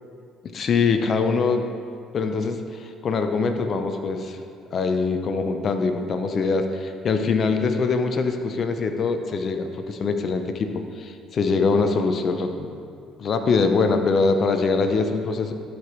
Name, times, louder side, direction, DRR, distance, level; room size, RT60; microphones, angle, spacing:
voice 1, 0.5-1.7 2.1-4.4 4.7-12.8 13.2-15.5, left 4 dB, 50° left, 7 dB, 0.8 m, -23 dB
12.0 x 5.2 x 4.6 m, 2.3 s
hypercardioid pair, 65°, 0 cm